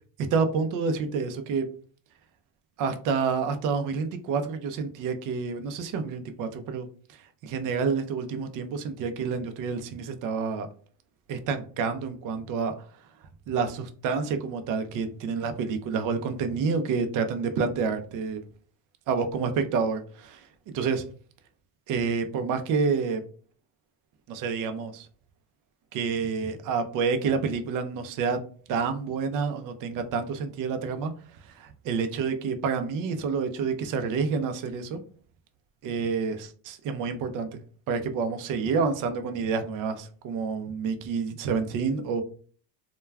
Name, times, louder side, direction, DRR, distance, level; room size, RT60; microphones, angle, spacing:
voice 1, 0.2-1.7 2.8-10.7 11.3-12.7 13.5-18.4 19.1-21.0 21.9-23.2 24.3-25.1 25.9-28.4 28.7-31.1 31.4-35.0 35.8-37.6 37.9-42.2, right 5 dB, 45° right, 8 dB, 0.5 m, -28 dB
2.2 x 2.2 x 3.3 m, 0.43 s
supercardioid pair, 115°, 48 cm